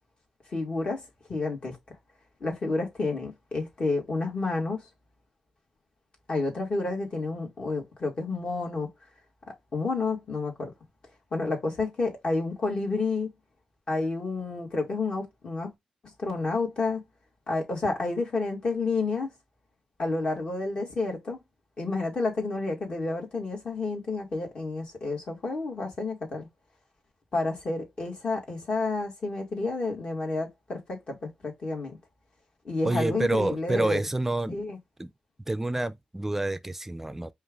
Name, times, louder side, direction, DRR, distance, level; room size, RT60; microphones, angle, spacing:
voice 1, 0.5-1.0 1.3-1.8 2.4-4.8 6.3-8.9 9.5-10.7 11.3-13.3 13.9-15.7 16.2-17.0 17.5-19.3 20.0-21.4 21.8-26.5 27.3-32.0 32.7-34.0 34.5-34.8, left 3 dB, 45° left, 1.9 m, -30 dB
voice 2, 32.8-34.6 35.0-35.1 35.5-37.3, right 2 dB, 15° right, 0.4 m, -28 dB
5.4 x 2.4 x 3.7 m
wide cardioid pair, 120°, 2 cm